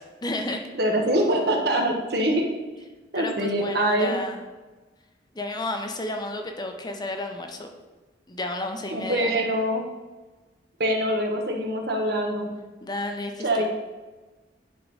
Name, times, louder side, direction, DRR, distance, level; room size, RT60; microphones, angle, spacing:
voice 1, 0.0-0.6 3.1-4.4 5.3-7.7 8.3-9.3 12.8-13.7, left 2 dB, 25° left, 4 dB, 0.8 m, -32 dB
voice 2, 0.7-2.5 3.1-4.1 8.9-9.8 10.8-12.5 13.4-13.7, right 1 dB, 65° right, 2 dB, 1.4 m, -24 dB
10.5 x 3.8 x 5.4 m, 1.2 s
head